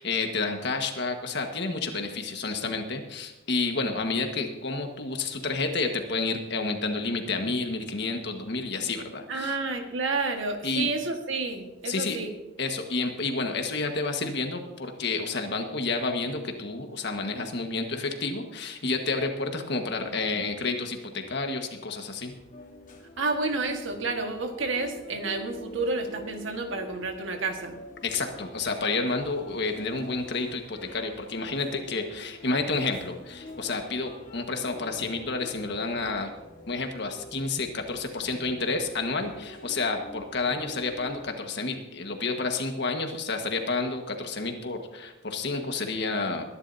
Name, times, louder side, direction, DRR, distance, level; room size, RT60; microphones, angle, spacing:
voice 1, 0.0-9.6 10.6-10.9 11.8-12.2 12.6-22.3 28.0-36.3 36.7-46.5, left 3 dB, 55° left, 4 dB, 1.6 m, -30 dB
voice 2, 9.3-12.3 23.2-27.8, right 3 dB, 65° right, 4 dB, 1.7 m, -30 dB
sound 1, 22.3-41.3, left 1 dB, 40° left, 1.6 m, -47 dB
22.0 x 11.0 x 2.8 m, 1.1 s
head